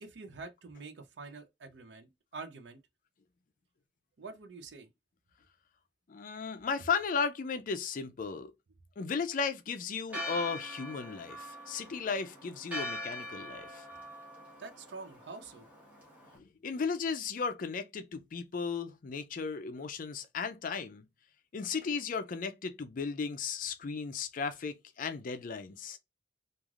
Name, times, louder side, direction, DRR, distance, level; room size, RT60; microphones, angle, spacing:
voice 1, 0.0-2.8 4.2-4.9 14.6-15.6, right 4 dB, 70° right, 0.5 m, -46 dB
voice 2, 6.1-8.5 9.0-13.9 16.3-21.0 21.5-26.0, left 5 dB, 45° left, 0.4 m, -35 dB
Church bell, 10.1-16.4, left 1 dB, 10° right, 0.9 m, -43 dB
3.1 x 2.4 x 2.4 m
head